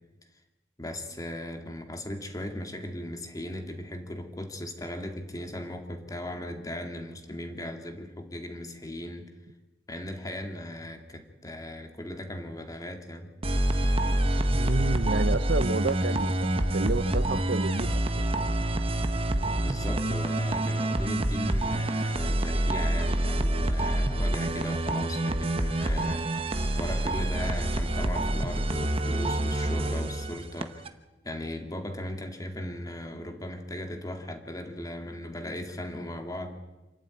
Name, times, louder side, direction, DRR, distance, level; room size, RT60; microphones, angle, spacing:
voice 1, 0.8-9.3 9.9-13.3 19.6-30.9 31.2-36.6, left 1 dB, 20° left, 4 dB, 2.4 m, -38 dB
sound 1, 13.4-30.9, right 1 dB, 30° right, 1.1 m, -27 dB
voice 2, 14.5-17.9 18.1-18.3, right 3 dB, 60° right, 14 dB, 0.6 m, -30 dB
27.5 x 12.0 x 9.2 m, 1.1 s
head